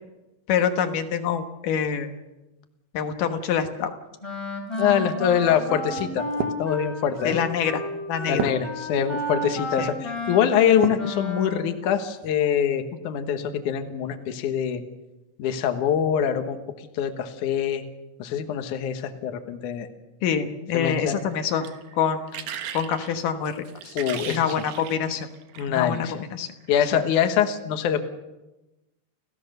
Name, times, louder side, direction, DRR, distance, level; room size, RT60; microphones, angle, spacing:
voice 1, 0.5-2.1 2.9-3.9 7.2-7.8 8.1-8.4 9.8-9.9 20.2-21.7 21.9-22.2 22.7-24.0 24.3-25.3 25.7-26.5 26.9-27.0, left 7 dB, 70° left, 6 dB, 2.1 m, -26 dB
Wind instrument woodwind instrument, 4.2-11.7, left 1 dB, 5° left, 2.9 m, -31 dB
sound 1, 4.7-11.2 11.7-12.4, right 9 dB, 90° right, 1.8 m, -36 dB
voice 2, 4.8-6.3 6.6-7.4 8.3-14.8 15.4-16.6 16.9-17.8 18.2-19.9 20.7-21.2 24.0-24.4 25.6-26.1 26.7-28.0, left 8 dB, 85° left, 7 dB, 1.7 m, -24 dB
sound 2, 21.2-25.8 26.6-26.8, right 9 dB, 65° right, 2.2 m, -38 dB
30.0 x 15.5 x 6.6 m, 1.0 s
omnidirectional pair, 5.6 m